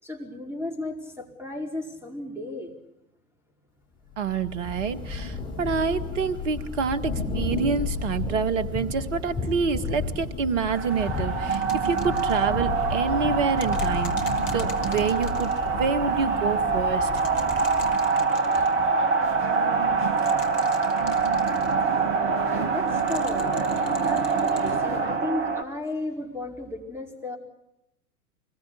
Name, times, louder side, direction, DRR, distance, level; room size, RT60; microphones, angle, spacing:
voice 1, 0.0-2.7 19.4-20.3 21.9-23.6 24.0-27.4, left 2 dB, 5° right, 3 dB, 4.8 m, -35 dB
Thunder / Rain, 4.1-18.2, left 4 dB, 10° left, 6.1 m, -33 dB
voice 2, 4.2-17.1, right 5 dB, 55° right, 11 dB, 1.9 m, -27 dB
sound 1, 10.7-25.6, right 4 dB, 25° right, 2.3 m, -25 dB
sound 2, 11.5-12.5 13.6-15.7 17.1-18.7 20.1-21.7 22.9-24.7 25.9-26.0, left 6 dB, 60° left, 3.3 m, -44 dB
26.0 x 21.0 x 8.3 m, 0.84 s
figure-of-eight pair, 90°, 44 cm